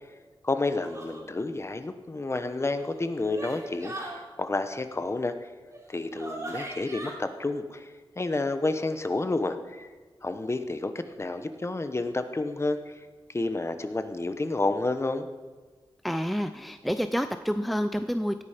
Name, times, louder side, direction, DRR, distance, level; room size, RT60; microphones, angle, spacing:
voice 1, 0.4-5.5 5.9-9.9 10.2-15.3, left 2 dB, 30° left, 9 dB, 1.0 m, -30 dB
sound 1, 0.8-1.2 2.6-4.2 5.7-5.8 6.2-7.1, right 2 dB, 35° right, 3.5 m, -39 dB
voice 2, 16.0-18.4, equal, ahead, 9 dB, 0.5 m, -28 dB
17.5 x 10.0 x 5.1 m, 1.3 s
wide cardioid pair, 100°, 9 cm